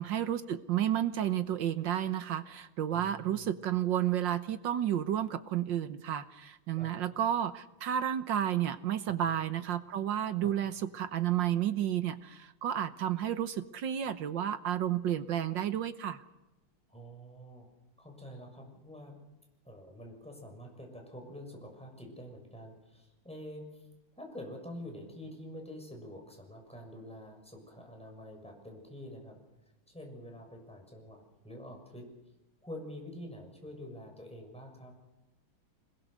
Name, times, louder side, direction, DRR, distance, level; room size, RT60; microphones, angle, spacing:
voice 1, 0.0-16.2, right 10 dB, 70° right, 11 dB, 1.6 m, -31 dB
voice 2, 2.9-3.5 6.8-6.9 9.3-9.4 10.4-10.5 16.9-17.7 18.0-19.2 19.6-23.7 24.2-29.4 29.9-32.1 32.6-34.9, equal, 5° left, 2 dB, 6.5 m, -47 dB
26.5 x 21.5 x 6.6 m, 0.98 s
omnidirectional pair, 2.2 m